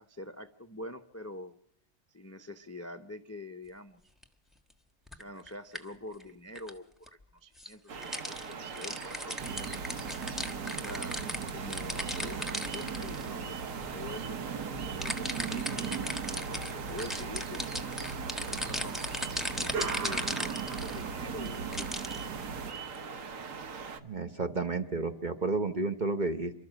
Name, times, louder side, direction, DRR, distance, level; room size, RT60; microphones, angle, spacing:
voice 1, 0.0-1.5 2.1-4.0 5.1-9.9 10.8-11.1 11.5-14.4 14.9-15.8 16.3-17.7 18.2-19.0 19.5-21.9, left 1 dB, 15° left, 8 dB, 0.5 m, -45 dB
sound 1, 4.2-4.3 5.1-5.8 6.2-6.3 6.5-6.7 7.1-7.2 7.6-7.7 8.0-13.3 13.8-14.0 15.0-21.0 21.4-22.2 22.7-23.0, left 1 dB, ahead, 1.2 m, -37 dB
sound 2, 7.9-24.0, right 5 dB, 55° right, 1.4 m, -42 dB
sound 3, 9.4-22.7, right 6 dB, 80° right, 1.8 m, -38 dB
voice 2, 24.0-26.5, right 3 dB, 35° right, 7 dB, 1.0 m, -31 dB
28.0 x 13.0 x 7.5 m, 0.75 s
omnidirectional pair, 1.7 m